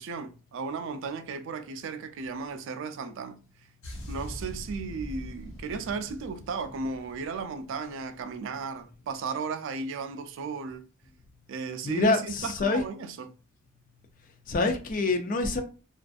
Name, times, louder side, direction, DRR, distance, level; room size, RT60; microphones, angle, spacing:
voice 1, 0.0-3.4 4.1-10.8 11.5-13.3, right 4 dB, 60° right, 0.4 m, -35 dB
sound 1, 3.8-8.4 8.6-8.9, equal, 75° left, 0.9 m, -43 dB
voice 2, 11.8-12.8 14.5-15.6, left 3 dB, 40° left, 0.4 m, -26 dB
2.5 x 2.4 x 2.3 m
head